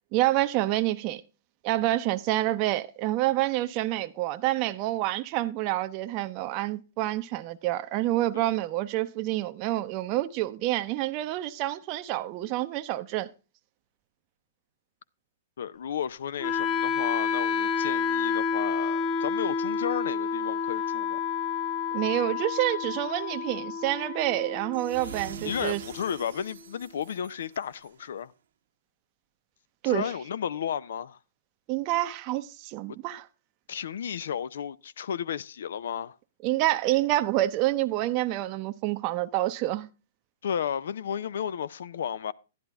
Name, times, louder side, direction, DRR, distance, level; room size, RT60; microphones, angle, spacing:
voice 1, 0.1-1.2 1.6-13.3 21.9-25.8 29.8-30.1 31.7-33.3 36.4-39.9, right 15 dB, 40° right, 0.6 m, -28 dB
voice 2, 15.6-21.2 25.4-28.3 29.8-31.2 33.7-36.2 40.4-42.3, left 8 dB, 70° left, 0.5 m, -33 dB
Wind instrument woodwind instrument, 16.4-26.4, left 6 dB, 30° left, 1.0 m, -30 dB
sound 1, 24.7-28.0, right 8 dB, 70° right, 1.1 m, -45 dB
11.0 x 10.5 x 3.4 m
hypercardioid pair, 130°, 0 cm